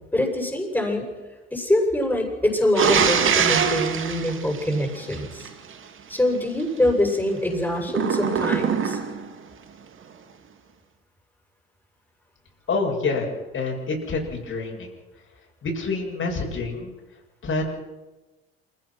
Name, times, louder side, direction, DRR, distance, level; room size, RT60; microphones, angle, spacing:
voice 1, 0.1-1.1 1.5-5.5 6.1-9.0, left 1 dB, 5° left, 0 dB, 7.6 m, -24 dB
sound 1, 2.8-5.5 7.9-9.3, right 7 dB, 40° right, 2.3 m, -23 dB
voice 2, 12.7-14.9 15.6-16.9 17.4-17.7, left 3 dB, 40° left, -1 dB, 7.3 m, -27 dB
27.0 x 16.5 x 6.2 m, 1.2 s
hypercardioid pair, 65°, 30 cm